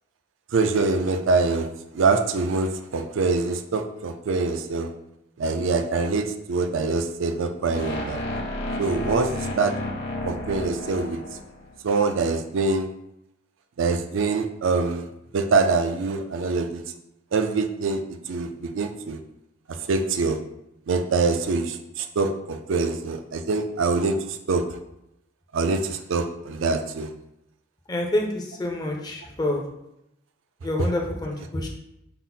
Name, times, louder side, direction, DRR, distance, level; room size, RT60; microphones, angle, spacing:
voice 1, 0.5-1.7 1.9-4.9 5.4-8.2 8.8-9.7 10.2-11.2 11.8-12.9 13.8-16.8 17.3-18.0 18.3-19.2 19.9-20.4 20.9-24.6 25.5-27.1, right 4 dB, 70° right, 6 dB, 0.4 m, -24 dB
sound 1, 7.7-11.8, left 1 dB, 50° left, 0.8 m, -32 dB
voice 2, 27.9-29.6 30.6-31.7, left 1 dB, 20° left, 1 dB, 0.5 m, -27 dB
5.5 x 2.1 x 4.0 m, 0.83 s
head